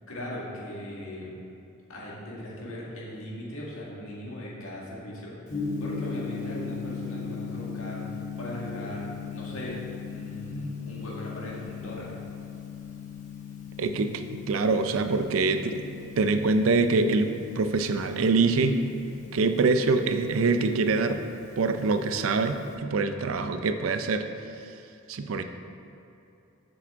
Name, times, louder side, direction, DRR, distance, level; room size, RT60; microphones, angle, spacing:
voice 1, 0.1-1.3 1.9-5.4 5.8-8.1 8.4-12.1, left 1 dB, 75° left, -5 dB, 1.8 m, -39 dB
Gong, 5.5-22.7, left 5 dB, 40° left, 1.1 m, -39 dB
voice 2, 13.8-15.8 16.2-17.3 17.6-18.8 19.3-21.2 21.6-24.2 25.1-25.4, right 3 dB, 70° right, 8 dB, 0.4 m, -24 dB
7.3 x 7.0 x 3.6 m, 2.8 s
head